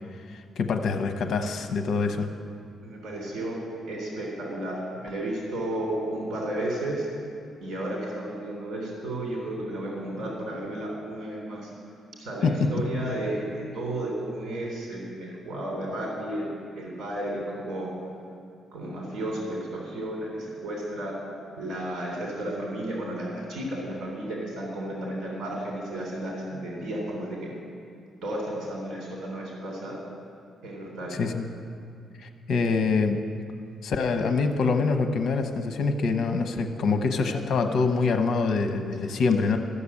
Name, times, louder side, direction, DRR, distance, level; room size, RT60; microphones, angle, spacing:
voice 1, 0.6-2.3 12.4-12.7 31.1-31.5 32.2-33.2 33.8-39.6, left 4 dB, 60° left, 6 dB, 0.9 m, -25 dB
voice 2, 2.8-3.6 3.9-7.1 7.6-11.7 12.2-16.5 16.7-17.9 18.7-21.2 21.6-27.5 28.2-29.9 30.6-31.2, right 1 dB, 65° right, -3 dB, 3.3 m, -33 dB
14.0 x 6.8 x 8.5 m, 2.4 s
cardioid pair, 150°, 0 cm